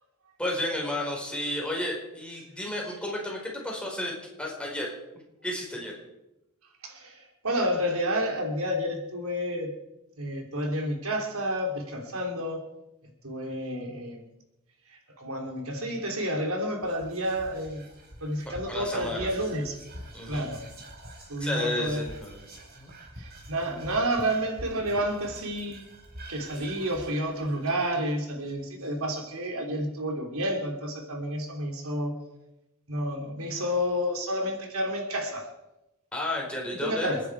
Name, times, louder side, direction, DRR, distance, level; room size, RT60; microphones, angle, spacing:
voice 1, 0.4-4.9 5.4-5.9 18.5-19.3 20.1-20.5 21.4-22.4 22.8-22.9 36.1-37.1, left 1 dB, 5° left, -2 dB, 4.6 m, -32 dB
voice 2, 6.8-9.7 10.2-12.6 13.2-14.2 14.9-17.9 18.2-19.8 20.3-20.6 21.3-22.0 23.2-25.8 26.3-32.1 32.9-35.5 36.8-37.2, equal, 85° right, 2 dB, 3.2 m, -30 dB
Whispering, 16.8-29.3, right 1 dB, 45° right, 4.6 m, -46 dB
29.5 x 10.0 x 4.8 m, 0.93 s
head